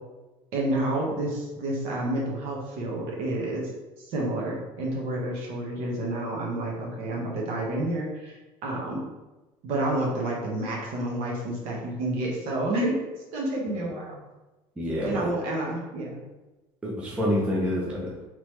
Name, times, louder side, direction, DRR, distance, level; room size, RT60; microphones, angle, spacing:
voice 1, 0.5-3.7 4.0-9.0 9.6-13.0 13.3-14.2 15.0-16.1, right 1 dB, 55° right, -2 dB, 1.1 m, -29 dB
voice 2, 14.8-15.3 16.8-18.3, equal, 10° right, -5 dB, 0.6 m, -27 dB
3.7 x 3.1 x 3.1 m, 1.1 s
cardioid pair, 170°, 12 cm